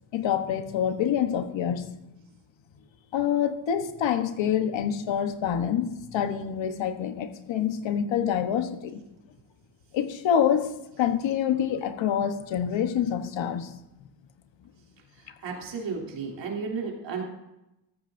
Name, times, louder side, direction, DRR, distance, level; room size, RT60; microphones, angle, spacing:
voice 1, 0.1-1.9 3.1-9.0 9.9-13.7, left 9 dB, 75° left, 8 dB, 1.2 m, -26 dB
voice 2, 15.4-17.2, right 5 dB, 75° right, -1 dB, 3.1 m, -33 dB
14.0 x 14.0 x 2.7 m, 0.91 s
cardioid pair, 90°, 45 cm